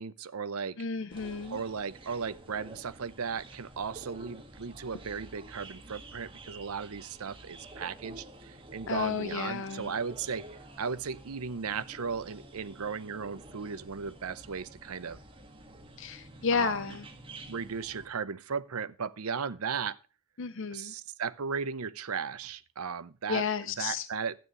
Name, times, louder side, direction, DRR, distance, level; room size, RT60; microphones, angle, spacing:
voice 1, 0.0-0.8 1.5-10.4 10.8-15.2 16.5-16.8 17.5-20.0 20.7-23.4 23.8-24.3, right 6 dB, 85° right, 0.7 m, -36 dB
voice 2, 0.8-1.6 8.9-9.9 16.0-17.1 20.4-20.9 23.3-24.1, left 6 dB, 60° left, 0.6 m, -32 dB
sound 1, 1.1-18.1, right 1 dB, 25° right, 1.6 m, -50 dB
12.5 x 9.0 x 3.0 m
head